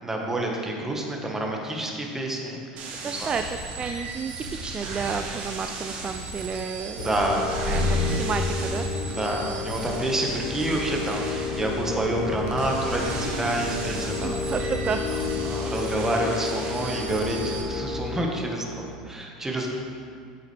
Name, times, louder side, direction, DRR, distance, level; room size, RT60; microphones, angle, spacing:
voice 1, 0.0-2.9 3.2-3.3 7.0-7.5 9.1-14.4 15.1-19.7, right 1 dB, 15° right, 0 dB, 1.6 m, -28 dB
sound 1, 2.8-17.6, right 3 dB, 55° right, 1.6 m, -36 dB
voice 2, 3.0-7.1 7.7-8.9 12.0-12.2 14.1-15.1, right 5 dB, 30° right, 7 dB, 0.4 m, -31 dB
sound 2, 7.0-19.0, left 5 dB, 65° left, 1.0 m, -32 dB
sound 3, 7.4-17.8, left 1 dB, 80° right, 2.0 m, -34 dB
8.6 x 8.5 x 3.5 m, 2.3 s
hypercardioid pair, 85°, 3 cm